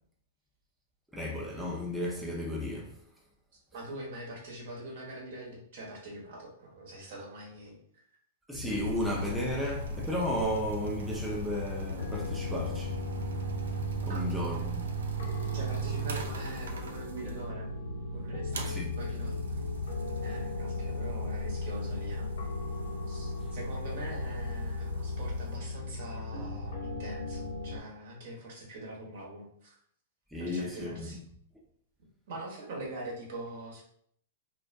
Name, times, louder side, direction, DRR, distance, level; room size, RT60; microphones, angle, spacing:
voice 1, 1.1-3.0 8.5-12.9 14.0-14.8 18.7-18.9 30.3-31.2, left 1 dB, 5° right, 0.4 m, -34 dB
voice 2, 3.7-7.8 14.1-14.2 14.6-14.7 15.5-17.7 18.1-19.3 20.2-22.3 23.1-29.7 30.4-31.2 32.3-33.8, right 1 dB, 65° right, 0.9 m, -43 dB
sound 1, 8.5-27.8, left 2 dB, 75° left, 0.7 m, -38 dB
sound 2, 8.8-17.4 18.5-25.6, right 3 dB, 80° right, 0.4 m, -38 dB
2.3 x 2.1 x 2.4 m
hypercardioid pair, 120°, 0 cm